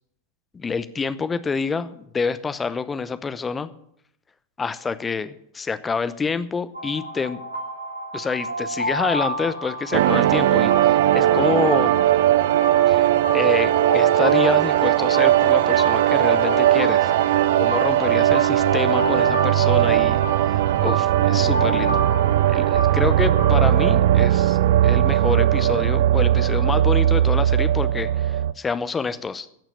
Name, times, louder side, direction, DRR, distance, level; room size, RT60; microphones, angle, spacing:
voice 1, 0.5-3.7 4.6-7.4 8.1-11.9 12.9-17.1 17.6-22.0 22.5-24.6 24.8-29.5, left 5 dB, 15° left, 13 dB, 0.7 m, -27 dB
sound 1, 6.7-24.0, right 1 dB, 90° right, 1.9 m, -30 dB
sound 2, 9.9-28.5, right 12 dB, 55° right, 0.4 m, -18 dB
16.0 x 6.0 x 7.2 m, 0.73 s
figure-of-eight pair, 90°, 0 cm